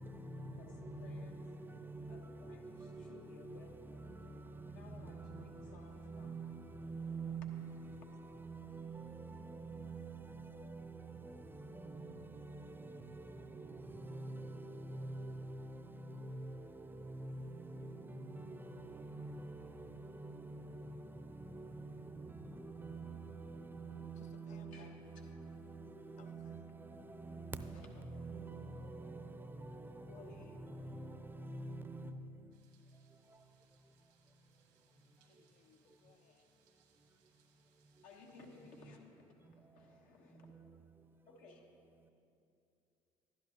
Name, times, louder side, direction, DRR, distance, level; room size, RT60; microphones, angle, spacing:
voice 1, 0.0-32.5 33.3-33.4 38.8-39.0 40.3-40.7, right 3 dB, 15° right, 0.6 m, -47 dB
voice 2, 0.5-1.4 2.1-4.1 4.6-6.6 7.9-8.1 24.5-25.2 27.7-28.3 30.0-30.6 38.0-40.5 41.2-41.6 41.9-42.1, left 3 dB, 70° left, 1.5 m, -59 dB
sound 1, 4.8-10.6, right 6 dB, 70° right, 0.5 m, -70 dB
voice 3, 24.2-24.9 26.2-26.7 35.2-36.5, left 8 dB, 55° left, 0.6 m, -65 dB
sound 2, 32.5-38.9, right 7 dB, 90° right, 1.3 m, -75 dB
11.5 x 10.5 x 3.0 m
supercardioid pair, 75°, 14 cm